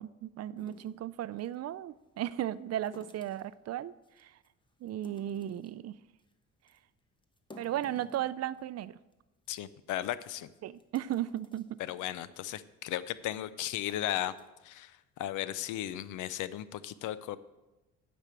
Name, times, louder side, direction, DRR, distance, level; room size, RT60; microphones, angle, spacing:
voice 1, 0.0-4.4 4.8-6.0 7.6-9.0 10.6-11.8, right 12 dB, 55° right, 17 dB, 0.4 m, -36 dB
sound 1, 0.6-1.6 2.8-3.5 4.0-4.5 4.9-5.8 6.2-6.3 6.7-6.8 7.2-8.8 9.1-9.2 9.5-9.6 10.3-10.4 10.8-11.7 12.2-12.4 12.9-13.1 13.7-14.5, left 2 dB, 15° left, 0.9 m, -55 dB
voice 2, 9.5-10.5 11.9-14.3 14.6-17.4, left 12 dB, 85° left, 16 dB, 0.6 m, -36 dB
10.0 x 5.2 x 7.4 m, 1.0 s
cardioid pair, 90°, 30 cm